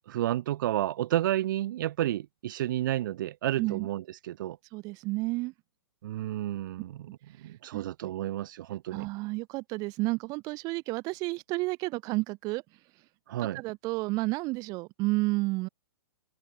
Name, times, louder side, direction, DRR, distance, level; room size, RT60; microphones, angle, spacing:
voice 1, 0.0-4.6 6.0-7.1 7.4-9.1 13.3-13.6, right 13 dB, 50° right, 4.5 m, -31 dB
voice 2, 4.7-5.5 7.4-7.8 8.9-12.6 13.5-15.7, right 23 dB, 25° right, 3.5 m, -31 dB
hypercardioid pair, 155°, 14 cm